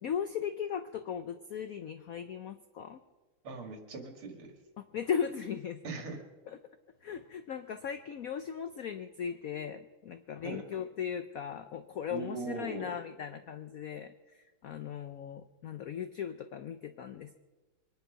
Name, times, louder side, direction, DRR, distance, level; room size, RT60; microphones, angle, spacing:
voice 1, 0.0-3.0 4.8-5.9 6.5-6.6 7.0-17.4, left 8 dB, 80° left, 10 dB, 0.8 m, -38 dB
voice 2, 3.4-4.5 5.8-6.2 10.4-10.6 12.1-12.9, right 4 dB, 85° right, 4 dB, 3.1 m, -40 dB
23.0 x 10.5 x 5.7 m, 1.2 s
omnidirectional pair, 2.3 m